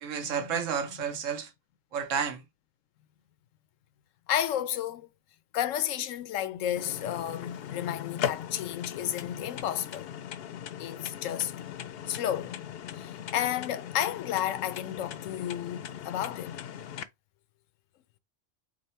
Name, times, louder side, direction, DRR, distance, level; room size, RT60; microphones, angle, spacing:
voice 1, 0.0-1.5 1.9-2.4, right 7 dB, 85° right, 1.2 m, -31 dB
voice 2, 4.3-5.1 5.5-10.1 10.8-11.5 12.1-12.6 12.9-16.6, left 11 dB, 90° left, 1.0 m, -32 dB
sound 1, 6.8-17.0, left 9 dB, 65° left, 0.7 m, -39 dB
5.2 x 2.1 x 4.2 m
omnidirectional pair, 1.3 m